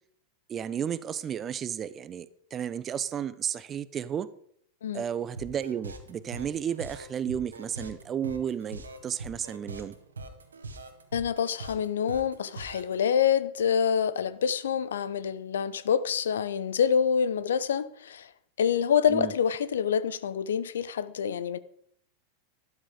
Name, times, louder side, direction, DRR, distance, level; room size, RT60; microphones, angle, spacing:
voice 1, 0.5-4.3 4.9-10.0 19.1-19.3, right 8 dB, 25° right, 0.7 m, -33 dB
sound 1, 5.4-12.9, right 2 dB, 75° right, 1.7 m, -42 dB
voice 2, 11.1-18.3 18.6-21.6, left 7 dB, 65° left, 0.7 m, -26 dB
12.5 x 12.0 x 5.1 m
figure-of-eight pair, 90°, 0 cm